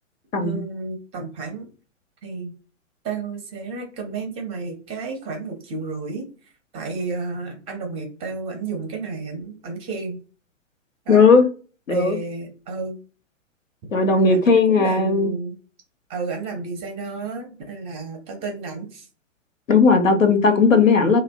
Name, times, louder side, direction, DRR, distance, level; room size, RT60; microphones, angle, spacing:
voice 1, 0.4-1.7 2.2-2.5 3.0-10.2 11.1-11.3 11.9-13.0 14.2-15.6 16.1-19.1, right 4 dB, 15° right, 0.5 m, -31 dB
voice 2, 11.1-11.5 11.9-12.2 13.9-15.4 19.7-21.2, left 4 dB, 90° left, 0.8 m, -16 dB
2.6 x 2.0 x 2.6 m
hypercardioid pair, 125°, 38 cm